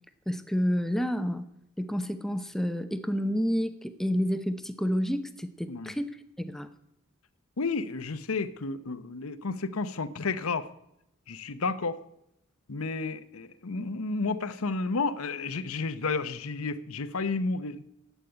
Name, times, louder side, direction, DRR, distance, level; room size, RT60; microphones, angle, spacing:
voice 1, 0.3-1.5 1.8-6.1 6.4-6.7, equal, ahead, 10 dB, 0.6 m, -29 dB
voice 2, 7.6-10.7 11.3-12.0 12.7-17.8, left 3 dB, 85° left, 14 dB, 0.9 m, -31 dB
11.5 x 8.3 x 9.7 m, 0.82 s
head